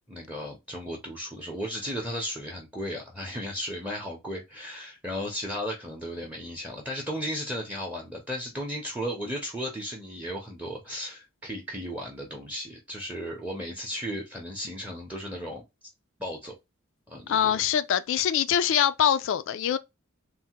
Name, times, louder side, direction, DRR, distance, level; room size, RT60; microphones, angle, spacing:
voice 1, 0.0-15.6 16.2-16.5 17.1-17.6, equal, 5° right, 0.6 m, -35 dB
voice 2, 17.3-19.8, left 9 dB, 60° left, 0.3 m, -24 dB
3.3 x 2.1 x 2.8 m
head